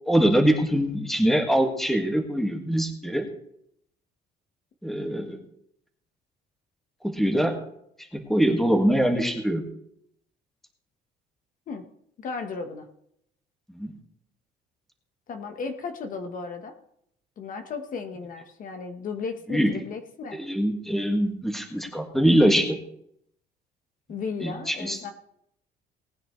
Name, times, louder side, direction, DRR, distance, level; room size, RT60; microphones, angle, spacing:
voice 1, 0.1-3.3 4.8-5.4 7.0-7.6 8.0-9.6 13.7-13.9 19.5-19.7 20.3-22.8 24.4-25.0, equal, ahead, 3 dB, 2.0 m, -23 dB
voice 2, 12.2-12.9 15.3-16.8 17.4-20.4 24.1-25.1, left 5 dB, 55° left, 6 dB, 1.3 m, -35 dB
19.0 x 9.7 x 3.3 m, 0.74 s
cardioid pair, 110°, 17 cm